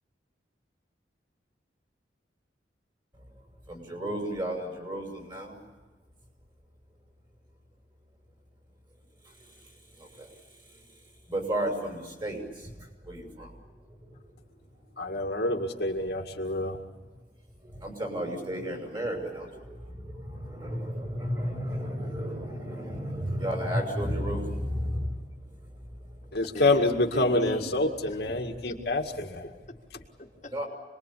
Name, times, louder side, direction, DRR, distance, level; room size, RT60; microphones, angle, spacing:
voice 1, 3.7-5.6 10.0-10.3 11.3-13.5 14.1-14.2 17.6-25.2 30.5-30.7, equal, 25° right, 3 dB, 6.2 m, -33 dB
voice 2, 15.0-16.8 26.3-29.5, left 2 dB, 60° left, 2 dB, 2.0 m, -27 dB
voice 3, 26.4-26.9 27.1-28.2 28.6-30.6, left 1 dB, 40° left, 1 dB, 2.0 m, -42 dB
27.0 x 21.5 x 8.5 m, 1.3 s
head